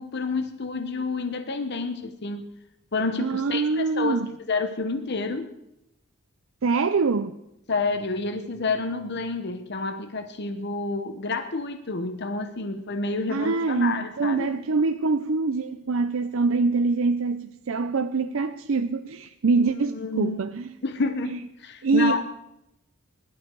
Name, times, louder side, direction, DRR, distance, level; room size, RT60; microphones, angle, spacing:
voice 1, 0.0-2.5 2.9-4.2 4.5-5.5 7.7-14.5 19.6-20.4 20.8-22.2, left 3 dB, 50° left, 1.0 m, -29 dB
voice 2, 3.2-4.3 6.6-7.4 13.3-20.7 21.3-21.4 21.8-22.2, right 4 dB, 70° right, 0.5 m, -24 dB
20.5 x 12.0 x 4.6 m
head